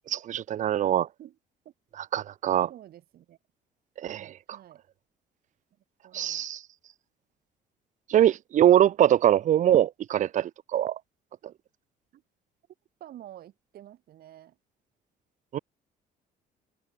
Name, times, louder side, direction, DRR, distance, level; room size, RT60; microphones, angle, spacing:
voice 1, 0.1-1.1 2.1-2.7 4.0-4.3 6.1-6.6 8.1-11.0 15.5-15.6, right 11 dB, 45° right, 0.6 m, -23 dB
voice 2, 2.7-3.4 4.1-4.8 6.0-6.4 11.4-11.5 12.1-12.2 13.0-14.6, right 12 dB, 65° right, 6.8 m, -49 dB
cardioid pair, 110°, 17 cm